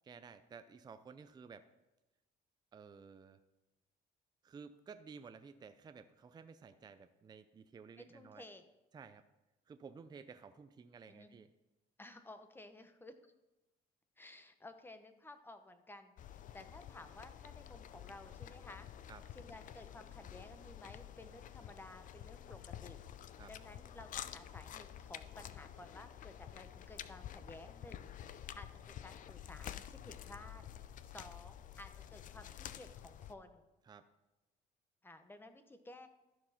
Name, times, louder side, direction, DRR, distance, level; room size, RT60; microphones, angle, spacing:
voice 1, 0.0-1.7 2.7-3.4 4.4-8.4 8.9-9.2 9.7-11.5 19.1-19.2 23.4-23.5 33.9-34.0, right 5 dB, 25° right, 10 dB, 0.5 m, -54 dB
voice 2, 8.0-8.7 11.1-11.3 12.0-13.1 14.2-18.9 19.3-30.7 31.0-33.6 35.0-36.1, left 2 dB, 10° left, 8 dB, 0.9 m, -55 dB
sound 1, 16.2-33.3, left 10 dB, 50° left, 0.5 m, -50 dB
13.0 x 4.6 x 5.8 m, 1.0 s
cardioid pair, 110°, 17 cm